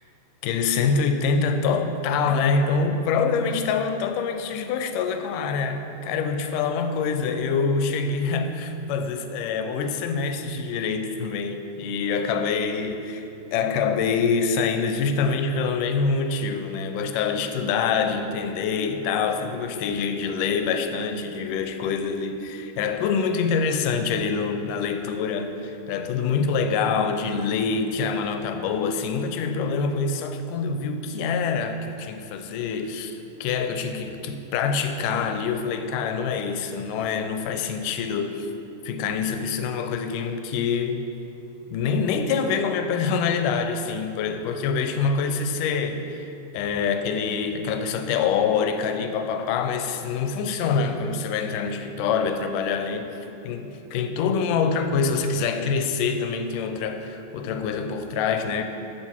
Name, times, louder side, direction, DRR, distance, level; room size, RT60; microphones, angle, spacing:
voice 1, 0.4-13.2 13.5-38.5 38.9-41.1 41.7-46.2 46.5-53.1 53.4-58.6, left 5 dB, 85° left, 7 dB, 2.2 m, -25 dB
13.0 x 6.2 x 4.5 m, 2.8 s
omnidirectional pair, 3.7 m